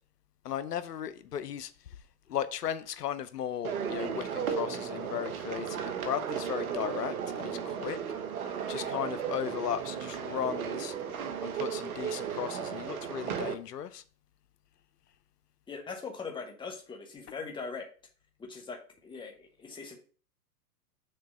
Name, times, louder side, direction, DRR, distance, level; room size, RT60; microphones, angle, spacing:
voice 1, 0.4-1.7 2.3-8.0 8.7-10.9 11.4-14.0, left 9 dB, 85° left, 0.7 m, -36 dB
sound 1, 3.6-13.5, right 8 dB, 65° right, 1.1 m, -35 dB
voice 2, 15.7-17.9 18.4-20.0, left 4 dB, 10° left, 1.3 m, -41 dB
6.6 x 3.5 x 6.0 m
hypercardioid pair, 120°, 46 cm